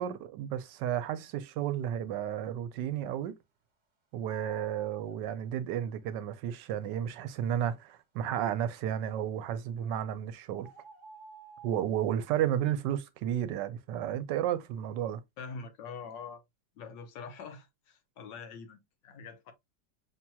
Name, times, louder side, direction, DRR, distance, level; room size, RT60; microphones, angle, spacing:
voice 1, 0.0-3.4 4.1-10.7 11.6-15.2, right 10 dB, 75° right, 1.2 m, -32 dB
sound 1, 4.3-5.2 9.8-9.9 10.6-11.9, right 3 dB, 45° right, 1.4 m, -50 dB
voice 2, 15.4-16.4 16.8-19.5, left 5 dB, 75° left, 1.6 m, -44 dB
5.9 x 2.9 x 2.2 m
omnidirectional pair, 2.0 m